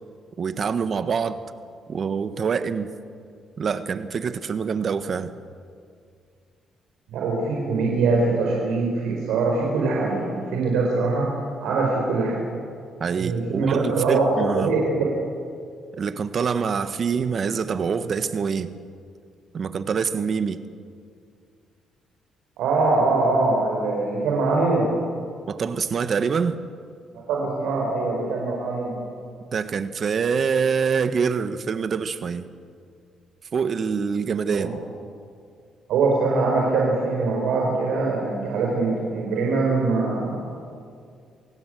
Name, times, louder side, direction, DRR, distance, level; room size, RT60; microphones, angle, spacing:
voice 1, 0.4-1.4 1.9-2.9 3.6-5.3 13.0-14.7 15.9-18.7 19.5-20.6 25.5-26.6 29.5-32.5 33.5-34.8, right 6 dB, 50° right, 11 dB, 1.4 m, -25 dB
voice 2, 7.1-11.3 11.6-12.4 13.1-15.1 22.6-24.9 27.1-28.9 34.5-34.7 35.9-40.4, right 3 dB, 85° right, -2 dB, 4.6 m, -23 dB
27.5 x 17.5 x 7.7 m, 2.3 s
cardioid pair, 90°, 0 cm